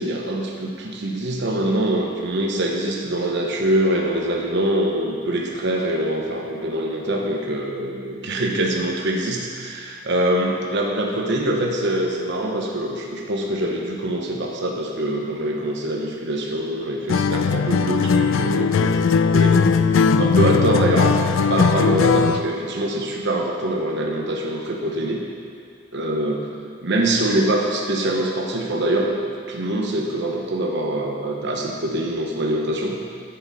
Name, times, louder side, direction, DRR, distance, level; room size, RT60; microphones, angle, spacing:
voice 1, 0.0-19.6 20.1-25.2 25.9-26.4 26.8-29.1 29.5-33.0, right 1 dB, 60° right, 0 dB, 1.1 m, -24 dB
Acoustic guitar, 17.1-22.5, left 5 dB, 70° left, 0.4 m, -18 dB
11.0 x 9.0 x 4.1 m, 2.2 s
head